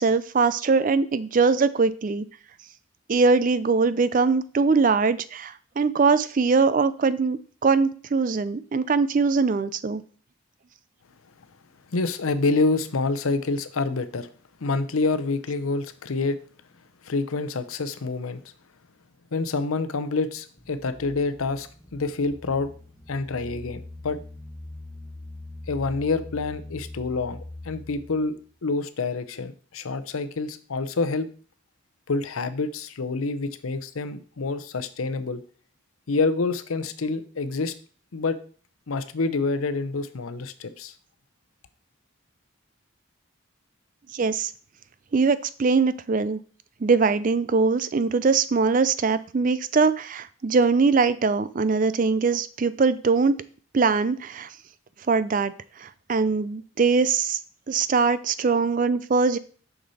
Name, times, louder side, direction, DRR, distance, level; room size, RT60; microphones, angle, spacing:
voice 1, 0.0-2.2 3.1-10.0 44.1-44.5 45.1-46.4 46.8-53.4 53.7-54.5 55.1-55.5 55.8-57.4 57.7-59.4, right 4 dB, 40° right, 15 dB, 0.4 m, -22 dB
voice 2, 11.9-14.3 14.6-16.4 17.0-18.4 19.3-22.7 23.1-24.2 25.7-28.4 28.6-31.3 32.1-35.4 36.1-37.7 38.1-38.4 38.9-40.9, left 3 dB, 85° left, 12 dB, 0.7 m, -27 dB
sound 1, 20.6-28.4, left 2 dB, 5° left, 0.7 m, -42 dB
6.3 x 6.0 x 4.1 m, 0.43 s
head